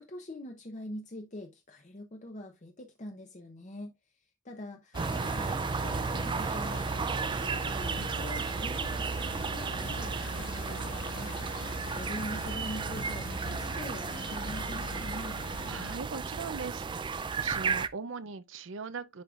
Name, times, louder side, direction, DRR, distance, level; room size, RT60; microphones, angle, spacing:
voice 1, 0.0-3.9 4.4-11.3 11.9-15.4, left 1 dB, 40° left, 0.8 m, -44 dB
Truck, 4.9-16.0, left 3 dB, 75° left, 1.3 m, -43 dB
sound 1, 4.9-17.9, right 5 dB, 25° right, 0.3 m, -34 dB
voice 2, 15.7-19.2, right 5 dB, 75° right, 0.6 m, -40 dB
10.5 x 4.7 x 2.4 m
head